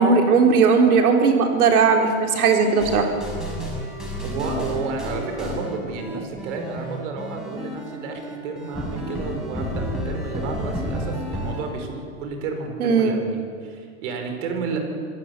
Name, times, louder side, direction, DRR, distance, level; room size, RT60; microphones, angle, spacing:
voice 1, 0.0-3.1 12.8-13.1, right 5 dB, 85° right, 3 dB, 4.0 m, -17 dB
sound 1, 2.6-11.6, equal, ahead, 6.1 m, -31 dB
voice 2, 4.2-14.8, right 4 dB, 55° right, 4 dB, 5.4 m, -31 dB
26.0 x 17.0 x 8.4 m, 2.2 s
supercardioid pair, 145°, 43 cm